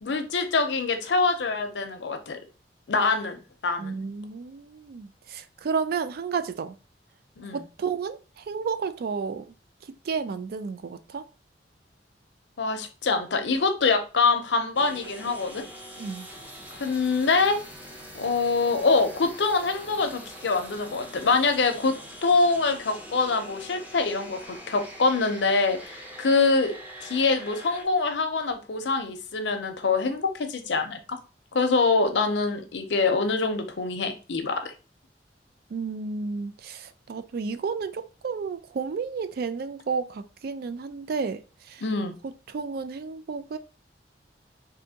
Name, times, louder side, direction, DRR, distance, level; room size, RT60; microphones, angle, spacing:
voice 1, 0.0-2.4 2.9-4.0 7.4-7.6 12.6-15.6 16.8-17.6 18.2-26.8 27.0-31.2 31.5-34.7 41.8-42.1, left 4 dB, 80° left, 0.6 m, -25 dB
voice 2, 3.8-6.7 7.5-9.5 10.1-11.2 16.0-16.3 35.7-41.8 42.5-43.6, right 5 dB, 60° right, 0.3 m, -32 dB
sound 1, 14.7-27.8, equal, 10° right, 0.6 m, -43 dB
3.4 x 2.6 x 2.7 m
head